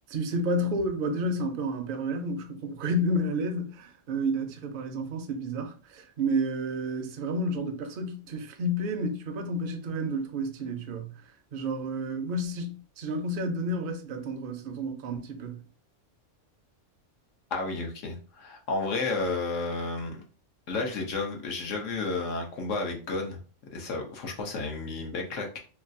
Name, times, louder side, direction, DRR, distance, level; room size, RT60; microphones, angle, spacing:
voice 1, 0.1-11.1 11.5-15.6, right 1 dB, 60° right, 0.6 m, -30 dB
voice 2, 17.5-20.2 20.7-23.4 23.7-25.6, left 3 dB, 75° left, 1.1 m, -32 dB
3.0 x 2.3 x 2.5 m
omnidirectional pair, 1.3 m